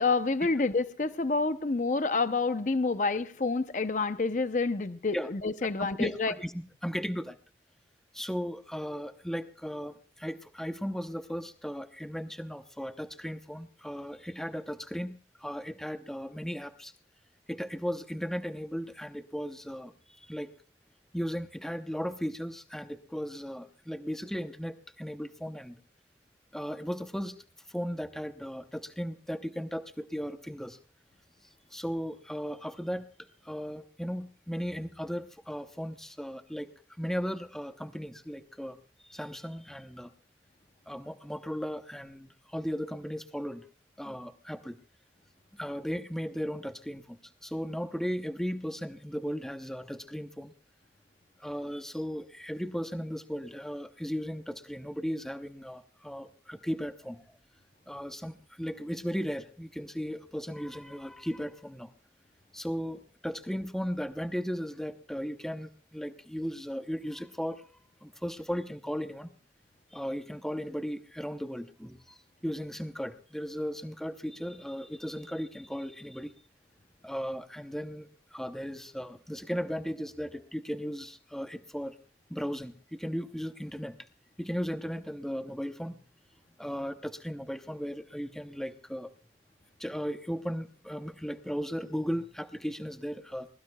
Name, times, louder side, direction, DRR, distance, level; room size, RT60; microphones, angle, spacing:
voice 1, 0.0-6.3, left 3 dB, 45° left, 0.6 m, -28 dB
voice 2, 5.8-7.4 8.1-16.9 17.5-20.5 21.1-25.8 26.5-27.4 27.7-30.8 31.7-36.7 37.0-38.8 39.1-40.1 40.9-43.7 44.0-44.8 45.5-50.5 51.4-57.4 57.9-61.9 62.5-67.7 68.0-69.3 69.9-76.3 77.0-82.0 82.3-83.9 84.4-86.0 86.6-89.1 89.8-93.5, equal, 5° left, 0.7 m, -36 dB
22.5 x 21.0 x 2.3 m
head